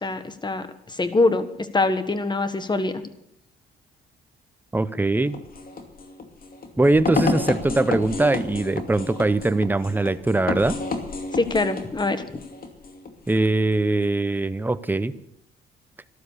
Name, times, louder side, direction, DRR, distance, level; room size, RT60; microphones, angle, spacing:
voice 1, 0.0-1.5 1.7-2.9 11.3-12.2, left 3 dB, 20° left, 11 dB, 1.5 m, -23 dB
voice 2, 4.7-5.3 6.8-10.8 13.3-15.1, right 2 dB, 10° right, 13 dB, 0.8 m, -21 dB
sound 1, 5.2-13.4, left 3 dB, 45° left, 2.5 m, -30 dB
13.0 x 12.5 x 6.9 m, 0.76 s
cardioid pair, 90°, 20 cm